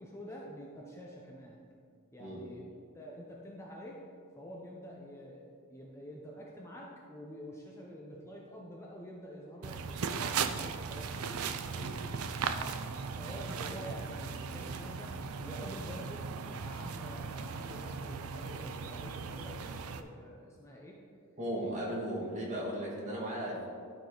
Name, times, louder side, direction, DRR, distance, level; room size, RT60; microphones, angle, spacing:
voice 1, 0.0-1.6 2.1-2.6 2.9-4.0 4.4-11.4 12.3-12.8 13.0-16.3 16.6-21.0, equal, 10° left, -3 dB, 0.7 m, -47 dB
sound 1, 9.6-20.0, right 5 dB, 70° right, 0.5 m, -38 dB
voice 2, 21.4-23.7, right 1 dB, 35° right, -4 dB, 2.0 m, -36 dB
12.0 x 5.0 x 3.9 m, 2.3 s
head